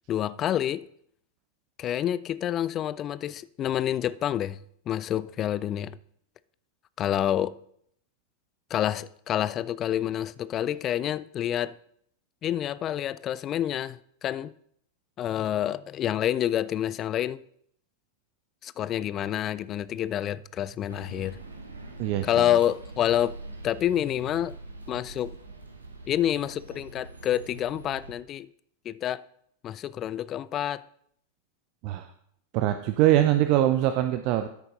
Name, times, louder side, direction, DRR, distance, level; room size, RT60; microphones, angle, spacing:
voice 1, 0.1-0.9 1.8-4.6 4.9-6.0 7.0-7.6 8.7-11.8 12.4-14.5 15.2-17.4 18.6-21.4 22.2-23.4 23.6-24.5 24.9-25.4 26.1-28.5 28.9-29.2 29.6-30.8, left 11 dB, 30° left, 0.4 m, -28 dB
sound 1, 20.9-28.1, right 2 dB, 80° right, 1.3 m, -44 dB
voice 2, 32.5-34.5, right 13 dB, 45° right, 0.5 m, -23 dB
13.0 x 6.7 x 3.8 m
figure-of-eight pair, 90°, 0 cm